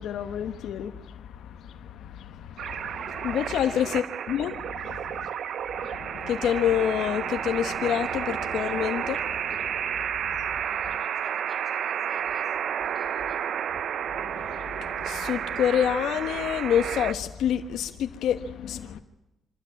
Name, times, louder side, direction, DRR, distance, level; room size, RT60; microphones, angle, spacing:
voice 1, 0.0-4.0 4.3-5.3 5.8-11.0 14.2-19.0, left 9 dB, 75° left, 1.1 m, -29 dB
sound 1, 2.6-17.1, right 8 dB, 65° right, 0.7 m, -31 dB
voice 2, 3.5-3.9 10.5-13.5, left 3 dB, 25° left, 5.4 m, -50 dB
25.5 x 13.0 x 9.4 m
cardioid pair, 90°, 0 cm